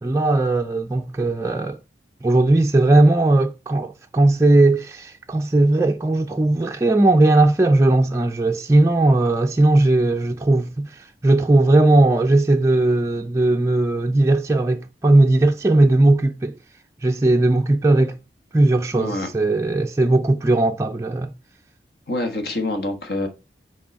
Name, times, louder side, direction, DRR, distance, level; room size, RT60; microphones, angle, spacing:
voice 1, 0.0-1.8 2.2-16.5 17.0-18.1 18.5-21.3, right 2 dB, 15° right, 0.4 m, -18 dB
voice 2, 18.9-19.3 22.1-23.3, left 2 dB, 65° left, 1.3 m, -26 dB
6.0 x 4.7 x 4.1 m
head